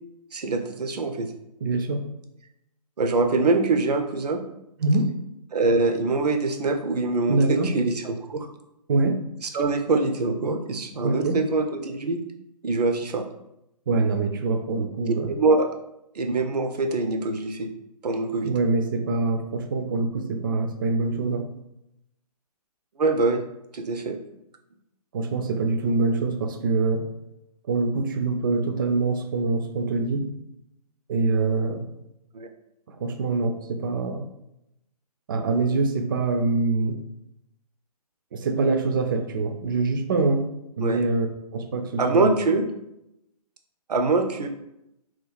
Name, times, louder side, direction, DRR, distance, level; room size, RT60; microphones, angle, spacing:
voice 1, 0.3-1.3 3.0-4.4 5.5-8.5 9.4-12.2 12.6-13.3 15.1-15.7 16.1-17.7 18.0-18.5 23.0-23.4 23.7-24.2 32.3-32.5 40.8-41.0 42.0-42.6 43.9-44.5, right 3 dB, 80° right, 5 dB, 0.6 m, -24 dB
voice 2, 1.6-2.0 4.8-5.1 7.3-7.7 8.9-9.2 11.0-11.4 13.9-15.4 18.4-21.5 25.1-27.0 27.7-30.3 31.1-31.8 32.9-34.3 35.3-37.0 38.3-40.5 40.8-41.3 41.5-42.3, right 3 dB, 35° right, 6 dB, 0.4 m, -24 dB
3.0 x 2.3 x 4.0 m, 0.85 s
hypercardioid pair, 145°, 20 cm